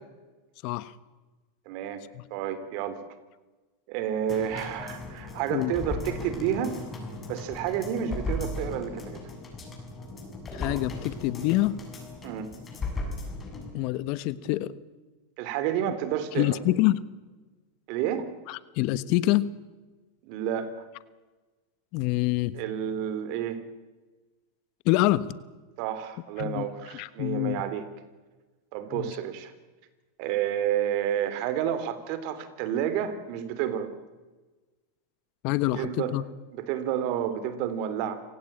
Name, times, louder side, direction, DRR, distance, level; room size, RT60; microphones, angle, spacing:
voice 1, 1.6-2.0 2.3-3.0 3.9-6.8 7.3-9.3 12.2-12.5 15.4-16.6 17.9-18.3 20.2-20.9 22.5-23.6 25.8-27.9 28.7-29.5 30.2-33.9 35.7-36.2 36.5-38.2, right 9 dB, 55° right, 12 dB, 3.4 m, -30 dB
sound 1, 4.3-13.7 14.1-14.2, left 2 dB, 25° left, 7.7 m, -37 dB
voice 2, 10.5-11.8 13.7-14.7 16.4-17.0 18.5-19.5 21.9-22.5 24.8-25.3 26.4-26.7 26.9-27.6 28.9-29.1 35.4-36.2, left 16 dB, 55° left, 17 dB, 1.2 m, -26 dB
27.5 x 17.0 x 8.8 m, 1.2 s
hypercardioid pair, 110°, 0 cm